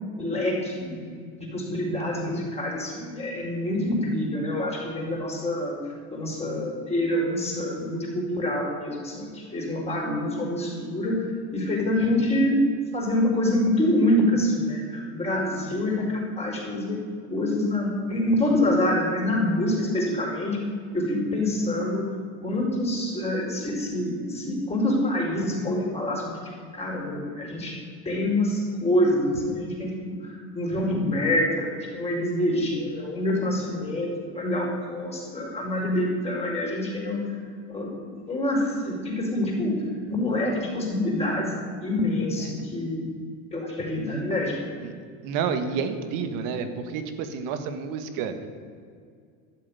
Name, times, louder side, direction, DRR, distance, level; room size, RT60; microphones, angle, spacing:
voice 1, 0.2-1.0 1.4-5.8 6.1-11.2 11.5-12.6 12.9-17.0 17.3-20.6 20.9-22.1 22.4-27.8 28.0-37.2 37.7-39.7 40.1-41.5 41.8-43.1 43.5-44.7, left 1 dB, 20° left, -2 dB, 4.8 m, -26 dB
voice 2, 45.2-48.3, right 6 dB, 65° right, 8 dB, 1.8 m, -30 dB
13.0 x 7.7 x 9.9 m, 2.1 s
supercardioid pair, 120°, 34 cm